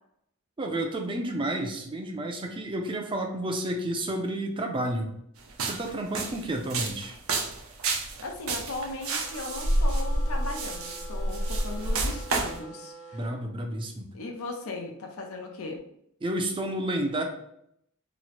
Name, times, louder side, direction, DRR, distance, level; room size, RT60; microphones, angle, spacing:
voice 1, 0.6-5.1 5.6-7.2 13.1-14.1 16.2-17.2, right 1 dB, 25° right, 3 dB, 0.4 m, -31 dB
sound 1, 5.5-12.6, right 2 dB, 75° right, 0.6 m, -29 dB
voice 2, 8.2-13.2 14.1-15.8, left 2 dB, 85° left, 3 dB, 0.6 m, -37 dB
sound 2, 9.2-13.3, right 2 dB, 35° left, 0.8 m, -46 dB
3.0 x 2.1 x 4.0 m, 0.74 s
head